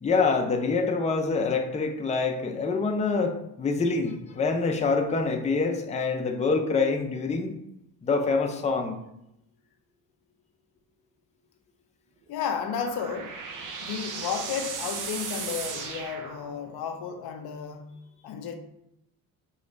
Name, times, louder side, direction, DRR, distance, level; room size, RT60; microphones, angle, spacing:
voice 1, 0.0-7.5 8.0-9.0, left 4 dB, 20° left, 0.5 m, -26 dB
voice 2, 12.3-13.4 13.8-18.0 18.2-18.6, left 7 dB, 70° left, 0.6 m, -33 dB
sound 1, 12.4-16.9, right 5 dB, 50° right, 0.7 m, -37 dB
3.0 x 2.4 x 4.2 m
supercardioid pair, 60°, 39 cm